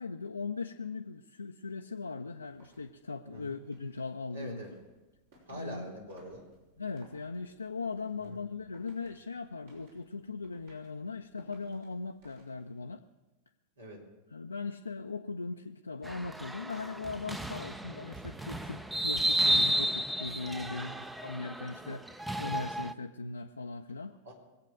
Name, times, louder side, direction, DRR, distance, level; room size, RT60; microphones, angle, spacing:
voice 1, 0.0-4.6 5.5-5.9 6.8-13.0 14.3-24.1, left 4 dB, 80° left, 5 dB, 0.5 m, -39 dB
sound 1, 2.4-12.9, right 1 dB, 60° right, 5.2 m, -64 dB
voice 2, 4.3-4.7 5.5-6.4 8.2-8.4 13.8-14.0 20.6-20.9 24.2-24.3, equal, 75° right, 0 dB, 3.8 m, -45 dB
sound 2, 16.0-22.9, equal, 5° right, 0.6 m, -32 dB
22.0 x 8.4 x 6.5 m, 1.2 s
figure-of-eight pair, 90°, 0 cm